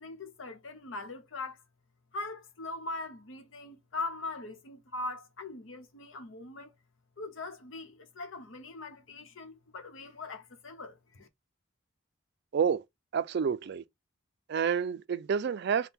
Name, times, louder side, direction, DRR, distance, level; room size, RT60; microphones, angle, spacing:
voice 1, 0.0-1.6 2.1-6.7 7.2-11.3, left 2 dB, 80° left, 0.9 m, -41 dB
voice 2, 13.1-13.8 14.5-15.9, right 7 dB, 55° right, 0.3 m, -29 dB
3.5 x 2.2 x 4.2 m
head